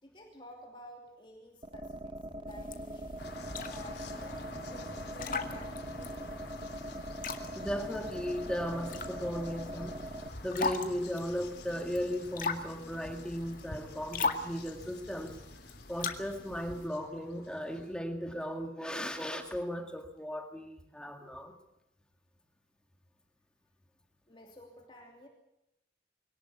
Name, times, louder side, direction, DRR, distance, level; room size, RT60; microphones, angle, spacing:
voice 1, 0.0-3.3 3.7-6.4 13.2-13.3 24.3-25.3, equal, 25° left, 1 dB, 2.8 m, -53 dB
sound 1, 1.6-10.3, right 1 dB, 25° right, 1.0 m, -42 dB
sound 2, 2.5-16.9, left 4 dB, 45° left, 2.0 m, -40 dB
sound 3, 3.2-18.0, left 2 dB, 70° left, 4.0 m, -49 dB
voice 2, 7.5-9.9 10.4-15.3 15.9-21.5, equal, 5° left, 4 dB, 2.1 m, -36 dB
23.0 x 18.5 x 8.4 m, 0.88 s
head